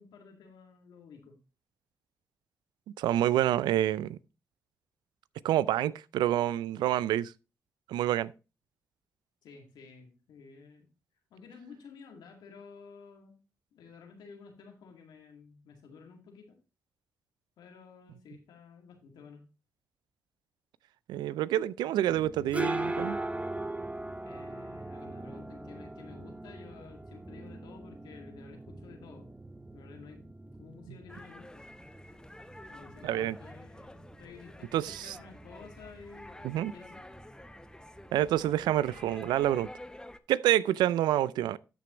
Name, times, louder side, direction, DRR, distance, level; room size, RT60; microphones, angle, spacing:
voice 1, 0.0-1.4 9.4-10.9 11.3-13.4 13.7-16.6 17.6-19.5 24.2-29.3 29.7-31.6 32.7-37.0, left 5 dB, 85° left, 2.1 m, -52 dB
voice 2, 3.0-4.2 5.4-7.3 7.9-8.3 21.1-23.2 33.0-33.4 34.7-35.1 36.4-36.7 38.1-39.7 40.3-41.6, right 12 dB, 85° right, 0.4 m, -27 dB
sound 1, 22.1-39.6, right 1 dB, 20° right, 0.9 m, -41 dB
sound 2, 31.1-40.2, left 1 dB, 10° left, 0.9 m, -49 dB
13.0 x 6.1 x 3.0 m
supercardioid pair, 45°, 7 cm